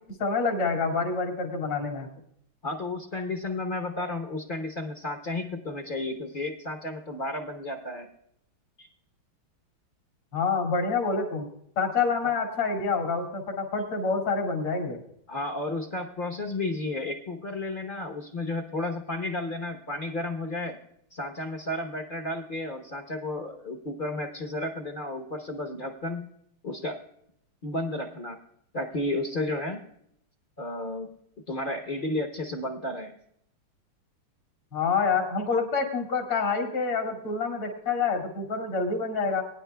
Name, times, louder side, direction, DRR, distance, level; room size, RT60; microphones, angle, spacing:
voice 1, 0.2-2.1 10.3-11.5 11.8-15.0 34.7-39.4, left 4 dB, 80° left, 2 dB, 3.0 m, -27 dB
voice 2, 2.6-8.1 8.8-8.9 15.3-20.8 21.1-26.3 26.6-27.0 27.6-28.4 28.7-29.8 30.6-31.1 31.5-33.2, left 2 dB, 50° left, 5 dB, 0.6 m, -32 dB
22.5 x 10.0 x 2.2 m, 0.72 s
omnidirectional pair, 2.3 m